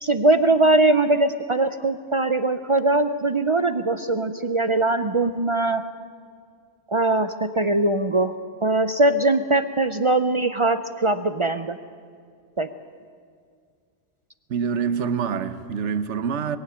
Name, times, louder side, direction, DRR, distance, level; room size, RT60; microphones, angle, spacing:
voice 1, 0.0-5.8 6.9-8.3 8.6-11.8 12.6-12.7, right 2 dB, 40° right, 0.4 m, -21 dB
voice 2, 14.5-16.6, right 6 dB, 80° right, 1.2 m, -26 dB
21.5 x 16.0 x 8.6 m
omnidirectional pair, 1.2 m